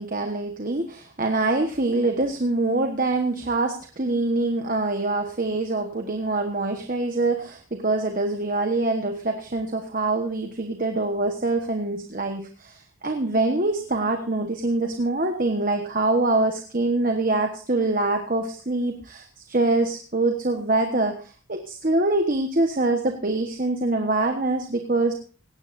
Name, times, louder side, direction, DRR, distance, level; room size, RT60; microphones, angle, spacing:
voice 1, 0.0-25.1, right 2 dB, 40° right, 4 dB, 1.3 m, -24 dB
17.5 x 16.5 x 2.6 m, 0.37 s
head